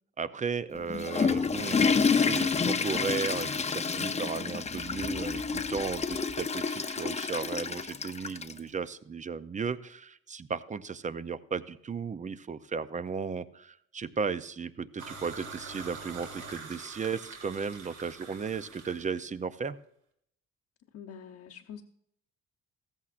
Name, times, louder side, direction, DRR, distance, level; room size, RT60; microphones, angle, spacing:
voice 1, 0.2-19.8, right 5 dB, 25° right, 14 dB, 0.5 m, -35 dB
Water / Toilet flush, 0.8-8.6, left 5 dB, 20° left, 0.6 m, -29 dB
sound 1, 15.0-19.2, right 4 dB, 80° right, 2.3 m, -44 dB
voice 2, 20.9-21.8, left 7 dB, 60° left, -1 dB, 0.9 m, -45 dB
14.5 x 14.5 x 2.5 m, 0.71 s
cardioid pair, 90°, 30 cm